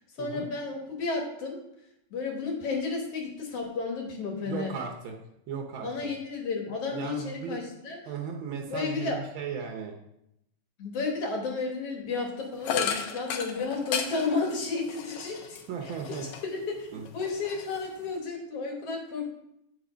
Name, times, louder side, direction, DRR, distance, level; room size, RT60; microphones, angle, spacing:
voice 1, 0.2-1.6 2.1-4.7 5.8-8.0 8.7-9.2 10.8-15.9 16.4-16.9 17.1-19.3, left 4 dB, 60° left, 1 dB, 2.2 m, -32 dB
voice 2, 4.4-5.1 5.5-6.1 6.9-7.6 8.0-9.9 15.7-16.2 16.9-17.1, right 6 dB, 80° right, 3 dB, 1.1 m, -36 dB
sound 1, 12.6-16.6 17.0-18.2, left 7 dB, 75° left, 1.9 m, -35 dB
9.0 x 4.7 x 5.0 m, 0.81 s
omnidirectional pair, 3.3 m